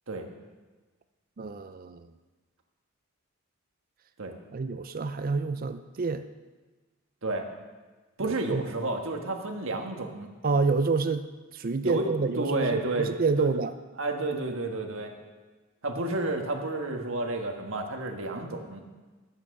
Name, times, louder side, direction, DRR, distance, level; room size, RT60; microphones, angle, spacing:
voice 1, 1.4-2.0 4.5-6.2 8.2-8.6 10.4-11.3 11.5-13.7, right 4 dB, 40° right, 11 dB, 0.4 m, -28 dB
voice 2, 8.2-10.3 11.8-13.1 13.4-13.5 14.0-15.1 15.8-18.8, right 2 dB, 70° right, 3 dB, 1.5 m, -31 dB
12.0 x 8.6 x 6.5 m, 1.3 s
head